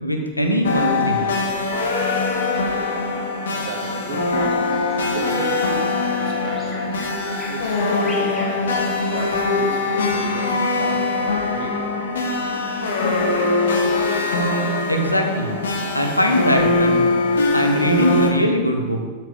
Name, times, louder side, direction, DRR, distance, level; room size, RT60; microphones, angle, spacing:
voice 1, 0.0-1.2 14.9-15.5 15.9-17.0 17.5-19.0, equal, 85° left, 4 dB, 1.1 m, -20 dB
sound 1, 0.6-18.3, left 3 dB, 65° left, 1.2 m, -22 dB
voice 2, 3.6-4.7 5.1-5.8 6.1-7.0 7.5-11.9, right 4 dB, 50° right, 1 dB, 1.7 m, -34 dB
Bird vocalization bird call bird song, 3.8-9.3, equal, 10° left, 2.9 m, -40 dB
12.5 x 6.2 x 3.5 m, 1.4 s
figure-of-eight pair, 90°, 0 cm